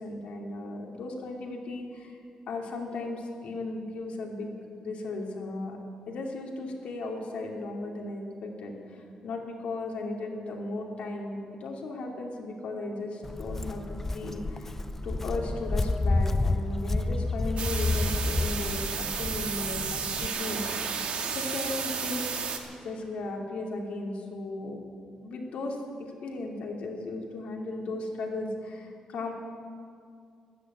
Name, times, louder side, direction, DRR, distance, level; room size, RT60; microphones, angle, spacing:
voice 1, 0.0-2.2 2.5-4.5 4.8-5.8 6.1-21.0 21.3-22.4 22.8-24.8 25.2-29.3, left 2 dB, 70° left, 0 dB, 2.7 m, -36 dB
Walk footsteps, 13.2-20.3, left 2 dB, 15° left, 0.5 m, -30 dB
sound 1, 17.6-22.6, right 6 dB, 60° right, 1.7 m, -32 dB
13.0 x 12.0 x 9.2 m, 2.3 s
cardioid pair, 140°, 2 cm